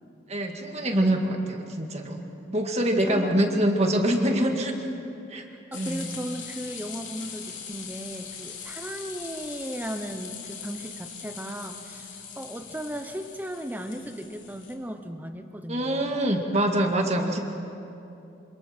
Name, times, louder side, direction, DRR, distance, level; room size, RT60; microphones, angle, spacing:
voice 1, 0.3-2.2 2.5-4.7 5.3-5.4 5.7-6.1 15.7-17.4, right 1 dB, 35° right, 3 dB, 1.9 m, -25 dB
voice 2, 3.1-3.7 4.3-4.6 5.5-16.2, equal, 10° right, 6 dB, 0.9 m, -36 dB
sound 1, 5.7-14.7, left 7 dB, 70° left, 3.1 m, -41 dB
27.0 x 26.5 x 4.5 m, 2.8 s
head